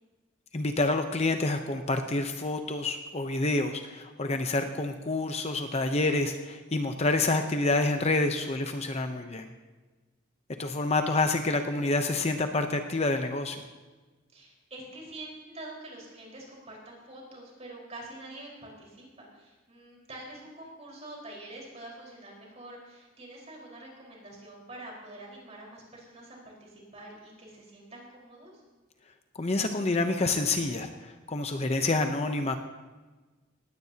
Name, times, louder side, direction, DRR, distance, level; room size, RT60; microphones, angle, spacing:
voice 1, 0.5-9.5 10.6-13.6 29.3-32.6, left 2 dB, 35° left, 6 dB, 0.8 m, -28 dB
voice 2, 14.3-28.5, right 1 dB, 35° right, -2 dB, 4.7 m, -46 dB
19.0 x 16.5 x 2.9 m, 1.3 s
head